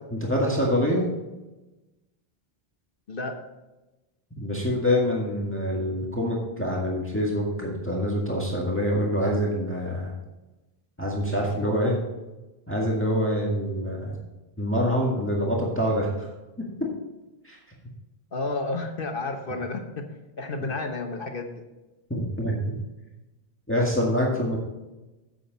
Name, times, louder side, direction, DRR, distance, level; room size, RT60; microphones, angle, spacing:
voice 1, 0.1-1.1 4.4-10.1 11.0-12.0 12.7-14.2 14.6-16.3 16.6-16.7 17.4-17.6 22.1-22.8 23.7-24.6, equal, 10° left, -3 dB, 1.8 m, -25 dB
voice 2, 11.4-12.0 18.3-20.1 20.4-21.6, left 3 dB, 60° left, 5 dB, 1.3 m, -31 dB
9.8 x 8.1 x 4.0 m, 1.1 s
omnidirectional pair, 1.0 m